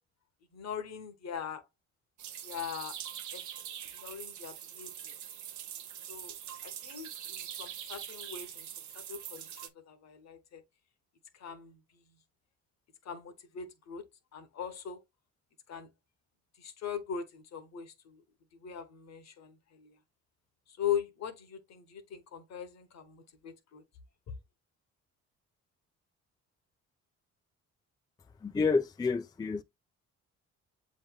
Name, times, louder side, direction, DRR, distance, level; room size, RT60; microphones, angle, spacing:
voice 1, 0.5-1.6 2.4-3.0 3.3-3.4 3.9-5.1 6.1-6.3 6.6-8.7 8.9-10.6 11.3-11.8 13.0-14.0 14.3-15.0 15.7-15.9 16.6-18.2 18.5-20.0 20.7-23.8 24.3-24.4, left 8 dB, 60° left, 1.1 m, -40 dB
sound 1, 2.2-9.7, right 10 dB, 75° right, 0.8 m, -43 dB
voice 2, 28.4-29.6, left 4 dB, 15° left, 0.4 m, -29 dB
7.6 x 3.1 x 2.3 m
cardioid pair, 90°, 30 cm